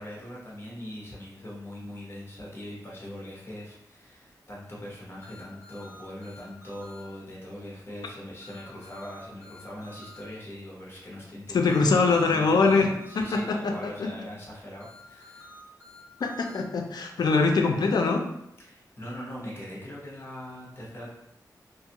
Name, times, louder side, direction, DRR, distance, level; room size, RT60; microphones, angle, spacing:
voice 1, 0.0-15.5 18.6-21.1, left 1 dB, 35° left, -4 dB, 0.9 m, -41 dB
sound 1, 5.2-7.0 8.4-10.2 11.6-13.4 14.8-16.6, left 1 dB, 40° right, 1.2 m, -50 dB
voice 2, 11.5-12.9 13.2-13.9 16.2-18.3, left 4 dB, 70° left, 4 dB, 0.4 m, -23 dB
2.5 x 2.3 x 2.8 m, 0.78 s
wide cardioid pair, 90°, 7 cm